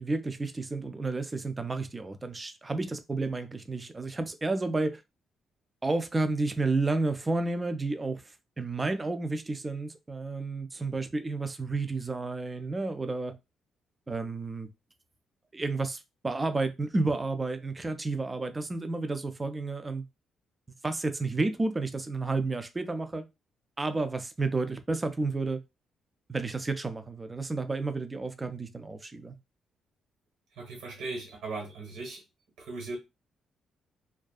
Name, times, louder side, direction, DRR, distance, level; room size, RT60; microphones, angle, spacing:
voice 1, 0.0-5.0 5.8-8.2 8.6-13.4 14.1-14.7 15.5-20.0 20.8-23.3 23.8-25.6 26.3-29.3, right 3 dB, 15° right, 0.3 m, -31 dB
voice 2, 30.6-32.2 32.6-33.0, right 3 dB, 80° right, 1.2 m, -38 dB
2.6 x 2.3 x 2.3 m
cardioid pair, 150°, 0 cm